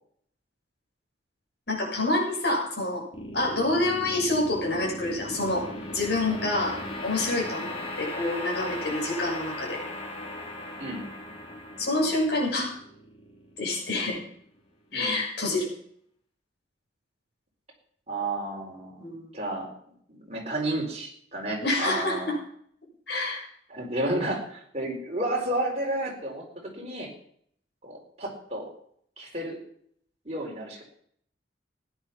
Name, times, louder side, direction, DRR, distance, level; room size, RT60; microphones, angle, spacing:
voice 1, 1.7-3.0 3.3-9.8 11.8-12.7 13.6-14.2 14.9-15.7 19.0-19.3 21.6-22.4 23.1-23.4, left 2 dB, 65° left, -2 dB, 6.6 m, -27 dB
sound 1, 3.1-14.3, left 1 dB, 30° left, 2.9 m, -38 dB
voice 2, 18.1-19.0 19.3-19.7 20.1-22.3 23.7-27.1 27.8-28.7 29.2-29.6 30.2-30.8, right 1 dB, 35° right, -1 dB, 4.2 m, -31 dB
16.0 x 10.0 x 5.9 m, 0.65 s
head